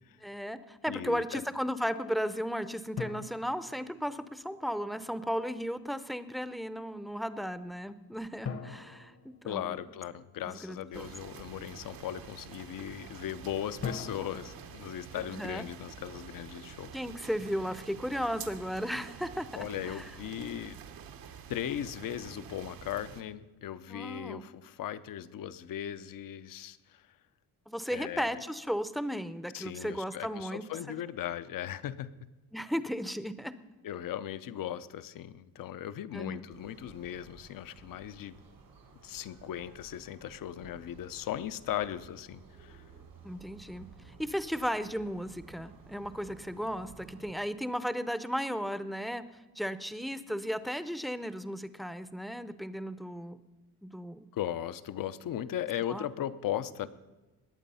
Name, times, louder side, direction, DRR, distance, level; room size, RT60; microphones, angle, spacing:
voice 1, 0.2-9.8 10.4-11.1 15.3-15.6 16.9-20.0 23.9-24.4 27.7-31.0 32.5-33.5 36.1-36.5 43.2-49.2 49.6-53.4 53.8-54.3 55.9-56.1, equal, ahead, 13 dB, 0.6 m, -35 dB
voice 2, 0.9-1.4 9.4-16.9 19.6-20.8 21.5-27.0 27.9-28.4 29.5-32.1 33.8-38.4 39.0-42.8 54.3-56.9, left 11 dB, 65° left, 14 dB, 0.7 m, -38 dB
sound 1, 3.0-4.6 8.4-10.3 13.8-16.1, left 5 dB, 40° left, 1.0 m, -43 dB
sound 2, 10.9-23.2, right 7 dB, 75° right, 1.1 m, -48 dB
sound 3, 36.5-47.3, right 5 dB, 90° right, 4.4 m, -55 dB
20.5 x 8.3 x 5.5 m, 1.1 s
cardioid pair, 115°, 36 cm